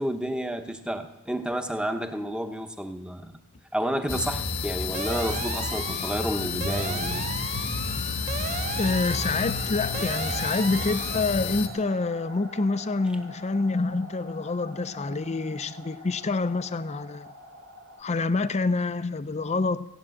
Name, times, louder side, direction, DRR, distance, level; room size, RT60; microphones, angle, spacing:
voice 1, 0.0-3.3 3.7-7.3, equal, 5° right, 0.9 m, -30 dB
sound 1, 4.1-11.7, left 5 dB, 75° left, 1.4 m, -30 dB
sound 2, 4.9-11.6, right 6 dB, 30° right, 0.5 m, -36 dB
sound 3, 7.7-18.0, equal, 65° right, 1.2 m, -45 dB
voice 2, 8.8-17.3 18.0-19.9, left 3 dB, 30° left, 0.5 m, -27 dB
16.0 x 8.8 x 7.6 m
head